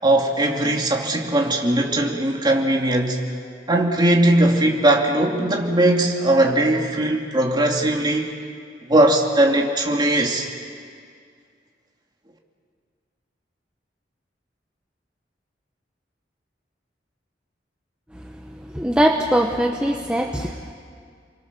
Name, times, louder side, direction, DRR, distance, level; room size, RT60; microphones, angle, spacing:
voice 1, 0.0-3.2 3.7-8.3 8.9-10.5, right 1 dB, 25° right, 1 dB, 2.7 m, -19 dB
voice 2, 18.6-20.7, equal, 5° right, 2 dB, 1.0 m, -21 dB
29.5 x 23.5 x 7.0 m, 2.2 s
head